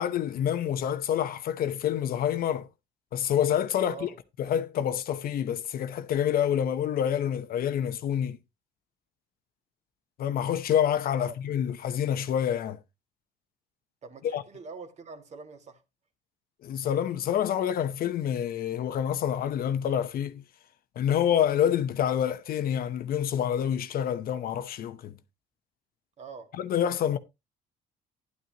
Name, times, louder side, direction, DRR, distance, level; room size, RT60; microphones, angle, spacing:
voice 1, 0.0-2.7 3.1-4.1 4.4-8.4 10.2-12.8 14.3-14.4 16.6-20.4 21.0-25.1 26.6-27.2, left 9 dB, 60° left, 0.9 m, -27 dB
voice 2, 3.8-4.2 11.2-11.3 14.0-15.8 26.2-26.6, right 4 dB, 40° right, 1.8 m, -44 dB
11.0 x 9.5 x 3.0 m
cardioid pair, 110°, 17 cm